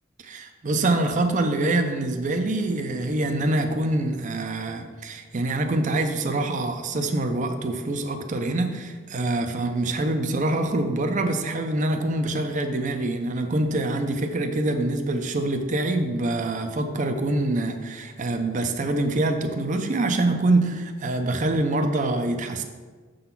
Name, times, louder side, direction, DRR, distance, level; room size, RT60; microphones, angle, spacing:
voice 1, 0.2-22.6, right 2 dB, 35° right, 6 dB, 0.5 m, -25 dB
6.8 x 3.8 x 5.8 m, 1.4 s
head